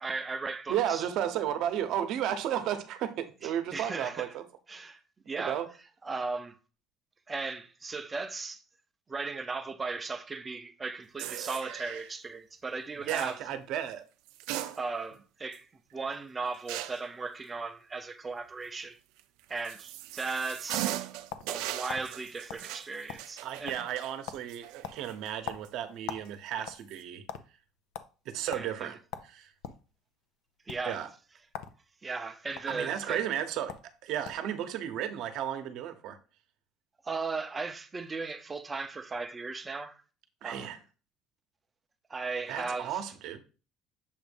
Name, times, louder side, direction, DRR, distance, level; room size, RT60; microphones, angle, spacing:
voice 1, 0.0-1.0 3.4-4.4 4.7-5.6 6.0-6.6 7.3-8.6 9.1-13.4 14.7-19.0 19.5-20.9 21.5-23.9 28.5-29.0 30.7-31.1 32.0-33.3 37.0-40.0 40.4-40.7 42.1-43.0, right 4 dB, 20° right, 0.6 m, -37 dB
voice 2, 0.7-4.4 5.4-5.7 13.0-14.0 23.4-27.2 28.3-29.0 29.2-29.5 30.8-31.1 32.7-33.8 34.0-36.2 40.4-40.8 42.5-43.4, right 10 dB, 65° right, 0.8 m, -33 dB
sound 1, 11.2-12.1 13.1-13.4 14.3-15.2 15.5-15.6 16.7-17.1 19.2-25.3 25.6-25.7 26.7-27.0, right 14 dB, 90° right, 0.5 m, -39 dB
sound 2, 20.7-21.6 21.9-22.1 22.5-22.7 22.9-23.4 23.7-24.0 24.3-24.5 24.8-26.3 26.6-27.4 27.9-28.1 28.5-28.7 29.1-29.8 30.6-30.8 31.5-31.8 32.0-32.6 33.4-33.5 33.7-33.9 34.2-34.5, left 9 dB, 85° left, 0.5 m, -41 dB
7.2 x 2.6 x 5.1 m
cardioid pair, 140°, 0 cm